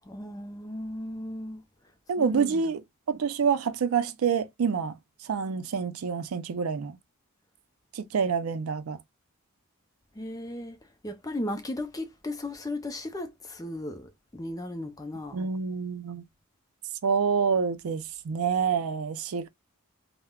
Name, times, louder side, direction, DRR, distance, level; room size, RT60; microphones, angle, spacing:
voice 1, 0.0-1.6 2.2-2.7 10.2-10.8 11.0-15.4, left 1 dB, 15° left, 0.4 m, -36 dB
voice 2, 2.1-5.0 5.2-7.0 7.9-9.0 15.3-16.2 17.0-19.5, right 6 dB, 80° right, 0.4 m, -27 dB
3.5 x 2.0 x 2.2 m
head